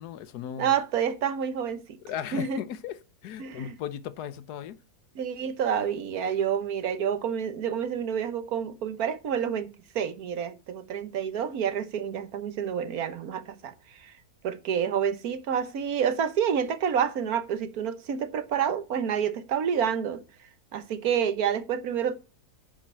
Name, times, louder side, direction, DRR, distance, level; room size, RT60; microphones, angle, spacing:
voice 1, 0.0-0.7 2.0-3.0 3.2-4.8, left 9 dB, 90° left, 1.3 m, -36 dB
voice 2, 0.6-1.8 2.3-2.6 3.4-3.7 5.1-14.1 14.4-20.2 20.7-22.2, right 8 dB, 70° right, 1.5 m, -28 dB
10.0 x 5.2 x 7.6 m
omnidirectional pair, 1.6 m